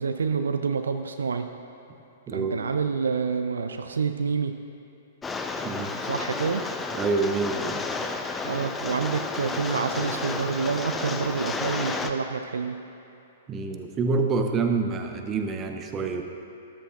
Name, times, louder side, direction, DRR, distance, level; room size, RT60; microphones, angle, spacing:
voice 1, 0.0-1.5 2.3-4.6 6.1-6.6 8.4-12.8, right 5 dB, 70° right, 7 dB, 0.4 m, -28 dB
Rain, 5.2-12.1, left 4 dB, 15° left, 0.5 m, -32 dB
voice 2, 6.9-7.8 13.5-16.2, right 4 dB, 25° right, 5 dB, 0.8 m, -27 dB
13.5 x 12.0 x 2.5 m, 2.8 s
figure-of-eight pair, 110°, 0 cm